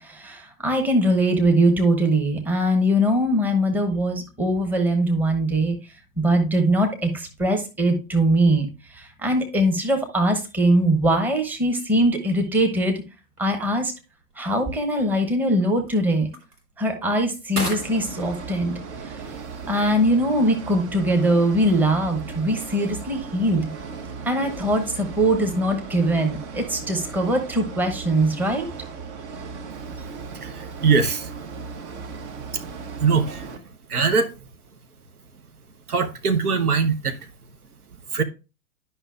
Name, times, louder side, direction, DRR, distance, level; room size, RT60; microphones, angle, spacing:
voice 1, 0.0-5.7 6.2-13.0 13.4-13.9 14.4-16.3 16.8-19.3 19.7-23.7 24.2-28.7, right 1 dB, 5° right, 0.9 m, -22 dB
sound 1, 13.2-22.4, right 1 dB, 90° right, 1.5 m, -41 dB
sound 2, 17.6-33.6, right 5 dB, 50° right, 1.1 m, -37 dB
voice 2, 30.4-31.3 32.5-32.6 33.0-33.5 33.9-34.3 35.9-37.2 38.1-38.2, right 5 dB, 75° right, 0.9 m, -22 dB
11.0 x 5.6 x 2.4 m
figure-of-eight pair, 100°, 45 cm